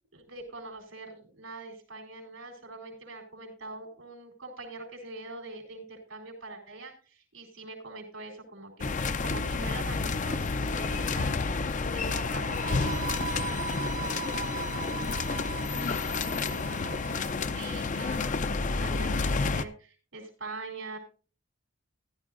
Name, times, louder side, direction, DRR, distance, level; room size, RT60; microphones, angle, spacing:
voice 1, 0.1-13.0 17.5-21.0, right 3 dB, 85° right, 1 dB, 4.2 m, -43 dB
sound 1, 8.8-19.6, left 4 dB, 40° left, 0.5 m, -30 dB
sound 2, 12.4-17.3, right 5 dB, 40° right, 0.8 m, -39 dB
voice 2, 13.6-15.3 15.7-17.3, left 1 dB, 80° left, 4 dB, 2.4 m, -50 dB
14.5 x 12.0 x 2.5 m, 0.37 s
head